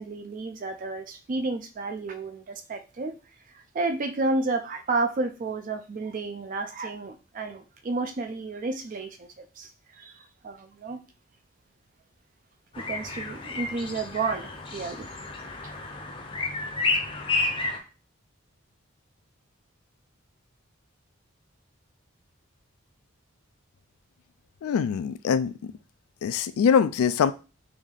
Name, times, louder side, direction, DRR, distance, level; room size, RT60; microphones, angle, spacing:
voice 1, 0.0-3.2 3.5-9.3 9.6-11.0 12.8-15.1 15.6-15.7, right 3 dB, 40° right, 0.3 m, -31 dB
sound 1, 12.7-17.8, left 3 dB, 25° left, 0.6 m, -31 dB
voice 2, 24.6-25.7 26.2-27.3, left 7 dB, 85° left, 0.3 m, -23 dB
3.4 x 2.6 x 3.7 m
head